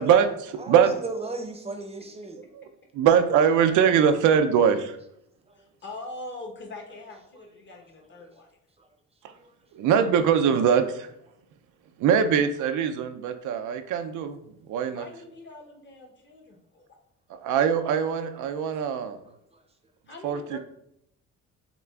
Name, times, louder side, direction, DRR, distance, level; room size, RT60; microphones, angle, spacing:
voice 1, 0.0-0.9 2.5-2.7 2.9-5.0 9.7-11.1 12.0-14.4 14.7-15.1 17.3-19.2 20.2-20.6, right 7 dB, 80° right, 8 dB, 0.5 m, -22 dB
voice 2, 0.6-2.4 5.5-5.6 7.3-7.5 7.7-7.8 8.8-8.9 9.4-9.5 19.5-19.6, right 3 dB, 20° right, 4 dB, 0.6 m, -35 dB
voice 3, 5.6-8.5 14.9-16.9 20.1-20.6, left 2 dB, 40° left, 2 dB, 0.9 m, -42 dB
6.7 x 2.4 x 2.3 m, 0.74 s
cardioid pair, 90°, 30 cm